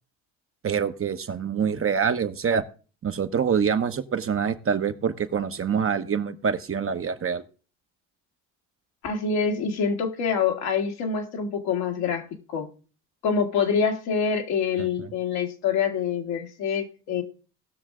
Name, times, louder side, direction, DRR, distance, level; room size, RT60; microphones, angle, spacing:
voice 1, 0.6-2.6 3.0-7.4 14.8-15.1, right 7 dB, 35° right, 8 dB, 1.0 m, -26 dB
voice 2, 9.0-12.3 12.5-12.7 13.2-17.2, left 6 dB, 75° left, 2 dB, 1.9 m, -26 dB
18.0 x 6.4 x 3.7 m, 0.37 s
supercardioid pair, 70°, 38 cm